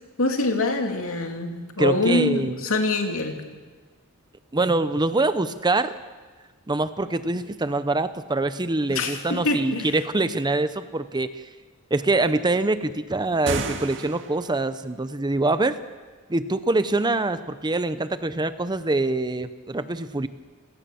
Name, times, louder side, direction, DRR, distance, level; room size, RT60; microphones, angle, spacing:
voice 1, 0.2-3.4 8.9-10.0, left 2 dB, 65° left, 3 dB, 2.9 m, -25 dB
voice 2, 1.8-2.6 4.5-6.0 6.7-11.4 11.9-15.8 16.3-20.3, right 2 dB, 20° right, 12 dB, 0.7 m, -24 dB
sound 1, 13.3-14.6, right 3 dB, 55° right, 2.0 m, -31 dB
29.5 x 17.5 x 7.1 m, 1.4 s
head